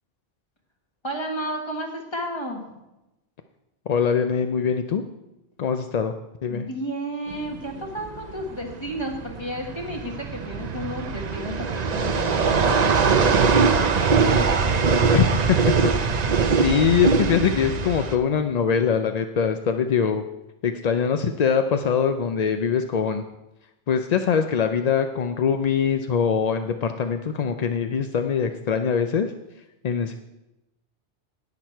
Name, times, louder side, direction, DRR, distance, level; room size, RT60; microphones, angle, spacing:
voice 1, 1.0-2.6 6.5-13.4, equal, 25° left, 2 dB, 1.6 m, -32 dB
voice 2, 3.9-5.0 5.6-6.1 6.4-6.7 15.1-15.4 16.0-16.1 16.5-20.2 20.6-23.2 23.9-29.3 29.8-30.2, left 6 dB, 55° left, 7 dB, 0.4 m, -23 dB
sound 1, 7.3-18.2, right 5 dB, 45° right, 0.7 m, -22 dB
11.0 x 9.3 x 4.5 m, 0.94 s
omnidirectional pair, 1.2 m